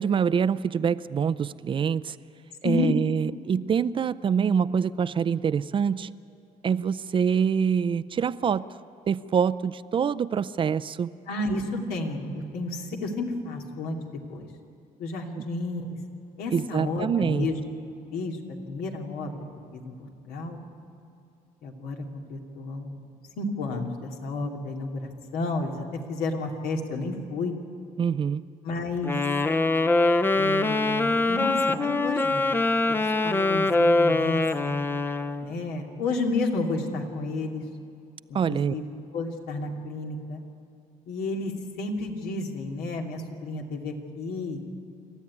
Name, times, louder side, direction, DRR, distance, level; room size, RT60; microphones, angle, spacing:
voice 1, 0.0-2.2 2.6-6.1 6.6-8.7 9.1-11.1 15.4-15.5 16.5-17.5 28.0-28.4 38.3-38.7, right 7 dB, 35° right, 16 dB, 0.5 m, -25 dB
voice 2, 2.6-3.0 11.3-14.5 15.0-16.0 16.4-17.6 18.1-19.5 19.7-19.9 20.2-20.6 21.6-23.0 23.4-27.5 28.6-29.2 30.3-31.6 31.8-32.5 32.9-34.8 35.4-37.6 38.5-38.9 39.1-40.4 41.1-44.6, left 2 dB, 85° left, 1 dB, 2.7 m, -31 dB
Wind instrument woodwind instrument, 29.0-35.5, left 2 dB, 15° left, 0.6 m, -23 dB
26.5 x 13.5 x 9.7 m, 2.5 s
cardioid pair, 125°, 15 cm